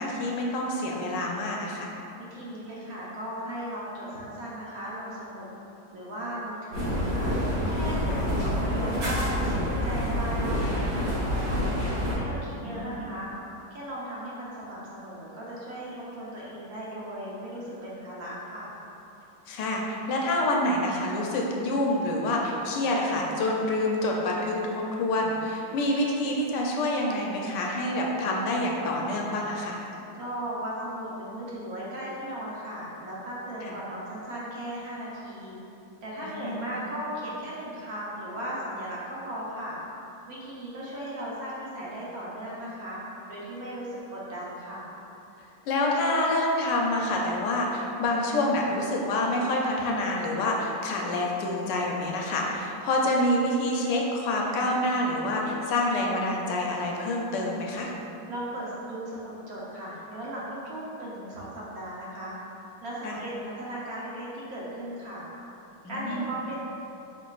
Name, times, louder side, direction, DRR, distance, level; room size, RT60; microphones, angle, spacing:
voice 1, 0.0-1.9 8.1-8.4 12.5-13.1 19.5-29.8 33.6-33.8 36.2-36.7 45.7-57.9 63.0-63.2 65.8-66.3, left 1 dB, 80° left, -1 dB, 1.2 m, -27 dB
voice 2, 2.2-5.5 5.9-7.3 7.7-11.8 12.1-13.3 13.7-18.7 30.1-35.6 36.0-39.7 40.3-43.0 43.3-44.9 58.3-62.3 62.8-65.2 65.9-66.6, right 1 dB, 60° right, -7 dB, 1.2 m, -37 dB
sound 1, 6.7-12.1, equal, 85° right, 2.2 m, -27 dB
4.4 x 4.3 x 2.4 m, 2.9 s
omnidirectional pair, 1.9 m